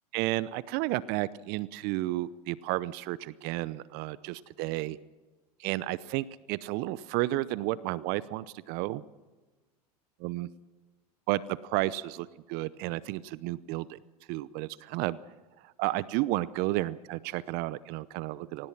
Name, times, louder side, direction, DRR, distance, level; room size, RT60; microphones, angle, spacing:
voice 1, 0.1-5.0 5.6-9.0 10.2-10.5 11.3-14.0 14.3-15.2 15.6-18.7, right 17 dB, 55° right, 18 dB, 0.8 m, -32 dB
24.0 x 19.0 x 5.9 m, 1.2 s
hypercardioid pair, 85°, 20 cm